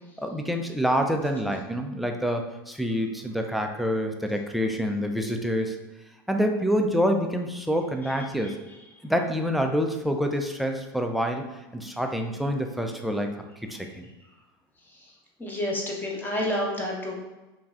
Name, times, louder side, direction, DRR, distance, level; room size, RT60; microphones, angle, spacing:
voice 1, 0.2-5.8 6.3-8.5 9.0-11.4 11.7-13.3 13.6-14.1, equal, ahead, 3 dB, 0.3 m, -27 dB
voice 2, 15.4-17.2, left 1 dB, 15° left, -2 dB, 0.8 m, -29 dB
3.1 x 2.4 x 2.3 m, 1.1 s
hypercardioid pair, 95°, 13 cm